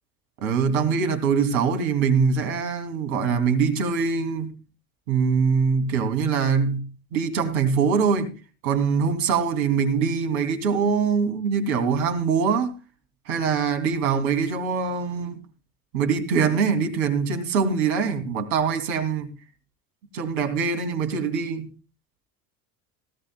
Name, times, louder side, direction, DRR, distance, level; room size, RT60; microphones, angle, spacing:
voice 1, 0.4-4.6 5.1-8.3 8.6-12.8 13.3-15.4 15.9-19.3 20.1-21.7, right 5 dB, 70° right, 2.7 m, -23 dB
18.0 x 17.0 x 2.2 m
hypercardioid pair, 70°, 45 cm